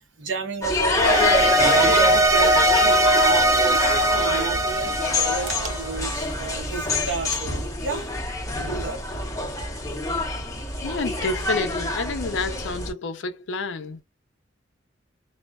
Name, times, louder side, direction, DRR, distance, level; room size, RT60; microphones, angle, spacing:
voice 1, 0.2-1.3 1.7-8.0 8.5-9.0, right 4 dB, 80° right, 0.8 m, -32 dB
sound 1, 0.6-12.9, left 2 dB, 15° left, 0.8 m, -26 dB
sound 2, 0.9-6.2, right 1 dB, 20° right, 0.4 m, -20 dB
voice 2, 10.8-14.0, left 3 dB, 75° left, 0.5 m, -29 dB
2.4 x 2.2 x 2.3 m
head